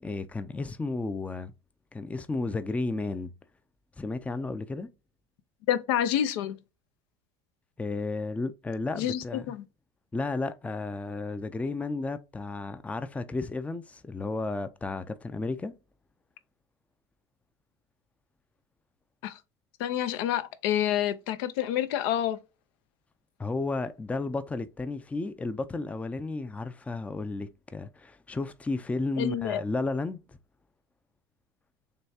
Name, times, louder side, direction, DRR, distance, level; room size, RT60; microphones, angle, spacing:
voice 1, 0.0-1.5 1.9-3.3 4.0-4.9 7.8-9.5 10.1-15.7 23.4-30.4, left 3 dB, 10° left, 0.4 m, -33 dB
voice 2, 5.7-6.6 9.0-9.6 19.2-19.4 19.8-22.4 29.2-29.6, left 11 dB, 75° left, 0.6 m, -28 dB
6.6 x 2.3 x 2.7 m
supercardioid pair, 105°, 13 cm